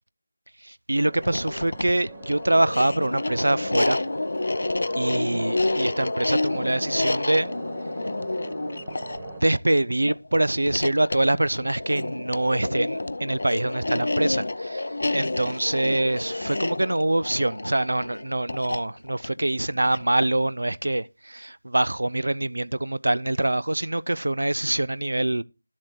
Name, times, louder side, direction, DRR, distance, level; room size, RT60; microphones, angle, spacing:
voice 1, 0.6-4.0 4.9-7.5 9.4-25.4, right 1 dB, 70° right, 0.7 m, -24 dB
sound 1, 1.0-9.4, right 7 dB, 15° right, 0.8 m, -45 dB
sound 2, 1.2-20.4, left 2 dB, 55° left, 0.6 m, -29 dB
12.5 x 7.4 x 4.6 m
figure-of-eight pair, 170°, 0 cm